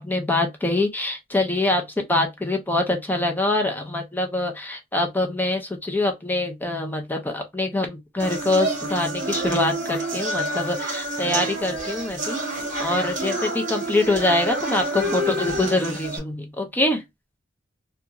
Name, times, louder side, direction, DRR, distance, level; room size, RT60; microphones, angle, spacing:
voice 1, 0.0-1.8 2.1-12.4 12.8-17.0, left 2 dB, 10° left, 0.4 m, -24 dB
sound 1, 8.2-16.2, right 1 dB, 40° right, 1.2 m, -28 dB
2.5 x 2.3 x 2.8 m
head